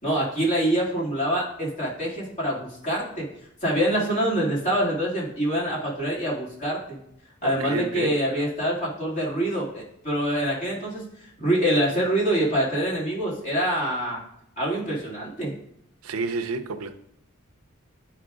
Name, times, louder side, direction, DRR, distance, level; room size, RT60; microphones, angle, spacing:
voice 1, 0.0-3.3 3.6-7.0 7.4-11.0 11.4-14.2 14.6-15.6, right 1 dB, 40° left, 2.2 m, -25 dB
voice 2, 7.4-8.3 16.0-16.9, right 3 dB, 80° right, 0.5 m, -30 dB
10.5 x 4.8 x 2.4 m
head